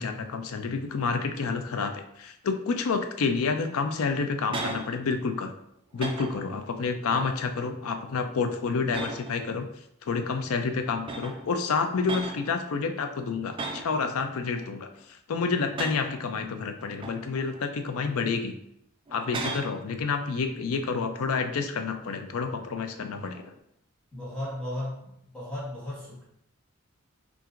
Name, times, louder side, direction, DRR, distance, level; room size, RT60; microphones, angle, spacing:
voice 1, 0.0-5.5 5.9-9.7 10.0-14.9 15.3-18.5 19.1-23.5, left 4 dB, 85° left, 7 dB, 0.4 m, -29 dB
sound 1, 4.4-4.9 5.3-5.6 5.9-6.5 7.1-7.5 7.9-8.2 8.9-9.5 10.4-10.5 11.0-11.5 12.0-12.5 13.5-14.0 14.4-15.0 15.6-16.2 16.8-17.6 18.0-18.2 19.1-19.8 23.2-23.6, right 2 dB, 25° right, 0.4 m, -37 dB
voice 2, 24.1-26.2, left 1 dB, 5° left, -9 dB, 1.5 m, -35 dB
5.7 x 2.6 x 2.5 m, 0.77 s
head